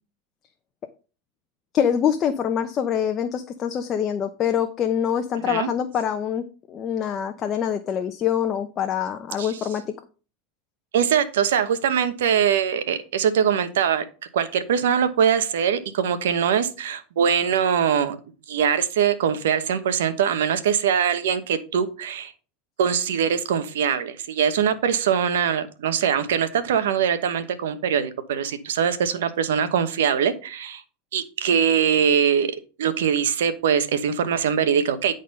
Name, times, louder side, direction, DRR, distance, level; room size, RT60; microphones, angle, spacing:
voice 1, 1.7-9.8, left 8 dB, 35° left, 6 dB, 0.8 m, -25 dB
voice 2, 10.9-14.0 14.3-18.2 18.5-22.3 22.8-30.8 31.1-32.5 32.8-35.1, right 8 dB, 85° right, 11 dB, 1.1 m, -22 dB
10.5 x 4.0 x 5.4 m, 0.35 s
supercardioid pair, 110°, 0 cm